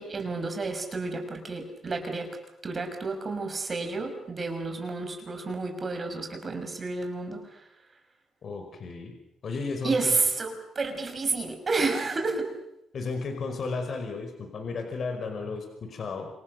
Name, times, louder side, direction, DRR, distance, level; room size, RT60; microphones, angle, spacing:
voice 1, 0.0-2.3 2.6-7.6 9.8-12.5, right 3 dB, 35° right, 5 dB, 6.2 m, -30 dB
voice 2, 8.4-9.1 9.4-10.1 12.9-16.3, left 4 dB, 50° left, 5 dB, 5.3 m, -34 dB
28.0 x 26.5 x 6.7 m, 0.85 s
cardioid pair, 90°, 0 cm